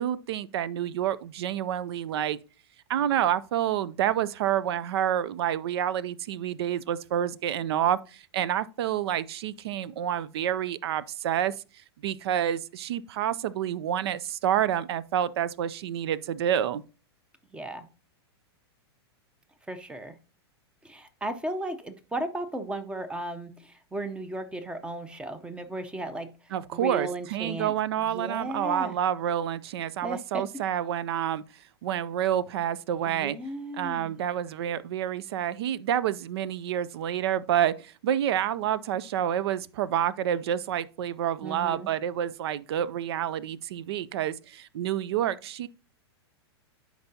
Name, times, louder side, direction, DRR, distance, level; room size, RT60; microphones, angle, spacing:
voice 1, 0.0-2.4 2.9-11.5 12.0-16.8 26.5-31.4 31.8-33.4 33.8-45.7, right 10 dB, 70° right, 0.5 m, -28 dB
voice 2, 17.5-17.9 19.7-20.1 20.8-26.3 26.7-27.7 28.1-29.0 30.0-30.4 33.0-34.2 41.4-41.9, right 1 dB, 5° right, 0.7 m, -35 dB
10.5 x 4.6 x 2.7 m
hypercardioid pair, 130°, 14 cm